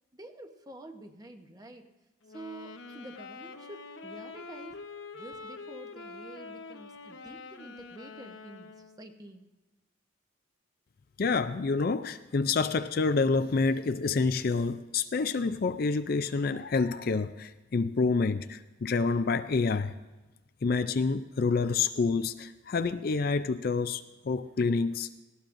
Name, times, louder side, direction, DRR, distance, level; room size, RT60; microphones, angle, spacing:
voice 1, 0.1-1.9 2.3-4.8 5.1-9.5, right 1 dB, 20° right, 0.9 m, -48 dB
sound 1, 2.2-9.1, left 4 dB, 75° left, 0.8 m, -45 dB
voice 2, 11.2-19.9 20.6-25.2, left 4 dB, 50° left, 0.4 m, -28 dB
19.0 x 17.0 x 2.6 m
head